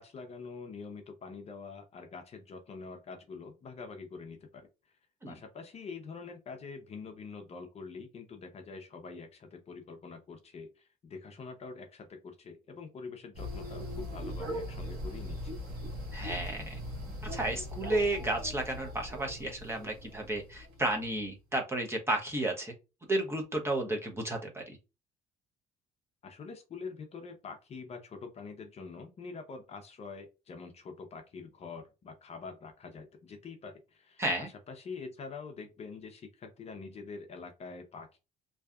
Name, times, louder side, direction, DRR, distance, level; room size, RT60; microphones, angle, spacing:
voice 1, 0.0-4.7 5.3-15.5 26.2-38.2, left 4 dB, 40° left, 5 dB, 0.6 m, -45 dB
sound 1, 13.3-21.0, equal, 75° right, 1.3 m, -40 dB
voice 2, 16.1-16.8 17.2-22.7 23.1-24.8 34.2-34.5, right 1 dB, 15° right, 1 dB, 0.7 m, -32 dB
2.7 x 2.3 x 2.3 m, 0.28 s
cardioid pair, 110°, 17 cm